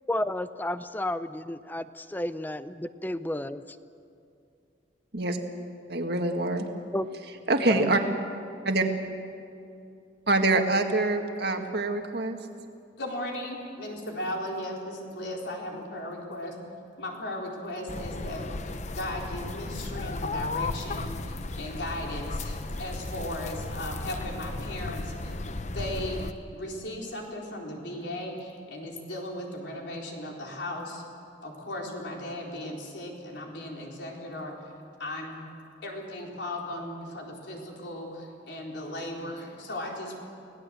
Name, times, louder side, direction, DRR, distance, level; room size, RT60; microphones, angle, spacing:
voice 1, 0.1-3.6 6.9-7.0 7.7-7.9, left 1 dB, 10° left, 13 dB, 0.6 m, -32 dB
voice 2, 5.9-6.6 7.5-8.0 8.7-8.9 10.3-12.4, right 2 dB, 60° right, 4 dB, 1.8 m, -25 dB
voice 3, 13.0-16.6 17.0-18.4 18.9-25.3 25.7-31.0 31.4-34.6 35.0-35.4 35.8-40.2, left 1 dB, 70° left, -1 dB, 4.1 m, -36 dB
sound 1, 17.9-26.3, left 2 dB, 40° left, 0.8 m, -35 dB
25.0 x 18.0 x 7.7 m, 2.5 s
head